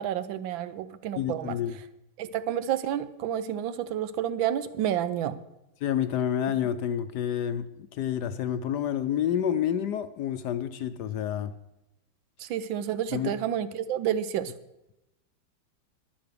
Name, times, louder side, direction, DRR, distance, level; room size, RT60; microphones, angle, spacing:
voice 1, 0.0-1.5 2.2-5.4 12.4-14.5, right 10 dB, 80° right, 14 dB, 1.5 m, -30 dB
voice 2, 1.2-1.8 5.8-11.5 13.1-13.3, left 9 dB, 70° left, 12 dB, 1.1 m, -29 dB
11.5 x 10.5 x 6.7 m, 0.91 s
omnidirectional pair, 2.1 m